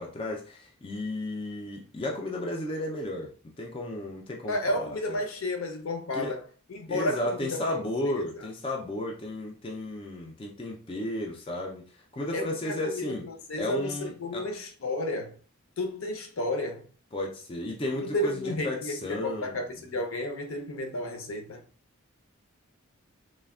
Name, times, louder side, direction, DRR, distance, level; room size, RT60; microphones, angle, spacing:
voice 1, 0.0-5.2 6.1-6.3 6.9-13.3 13.6-14.5 17.1-19.6, left 1 dB, 25° left, 0.3 m, -34 dB
voice 2, 4.5-6.4 6.7-8.5 12.3-15.3 15.8-16.9 18.0-21.6, left 1 dB, 75° left, 0.6 m, -32 dB
3.2 x 2.1 x 2.3 m
head